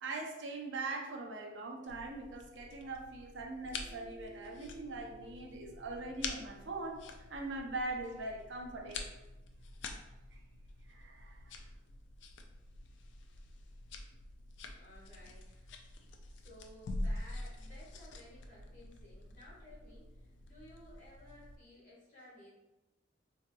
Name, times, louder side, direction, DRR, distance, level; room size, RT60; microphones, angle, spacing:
voice 1, 0.0-7.0 7.3-9.1 10.9-11.4, right 2 dB, 75° right, 1 dB, 0.5 m, -41 dB
sound 1, 1.9-21.6, left 2 dB, 80° left, 0.4 m, -46 dB
sound 2, 3.6-12.1, right 1 dB, 45° right, 0.9 m, -60 dB
voice 2, 14.7-15.7 16.3-22.5, left 1 dB, 45° left, -7 dB, 1.5 m, -57 dB
3.7 x 2.9 x 2.2 m, 0.97 s
head